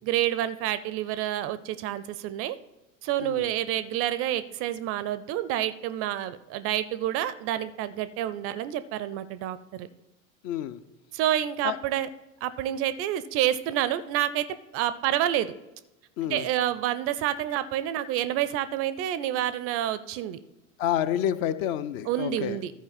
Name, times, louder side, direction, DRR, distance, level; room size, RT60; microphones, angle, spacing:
voice 1, 0.0-2.6 3.0-9.9 11.1-12.1 12.4-14.5 14.7-15.5 16.3-20.4 22.1-22.7, right 12 dB, 35° right, 14 dB, 0.5 m, -28 dB
voice 2, 3.2-3.5 10.4-10.8 11.6-11.8 16.2-16.4 20.8-22.6, left 11 dB, 45° left, 13 dB, 0.6 m, -29 dB
13.5 x 5.0 x 4.1 m, 0.99 s
figure-of-eight pair, 75°, 41 cm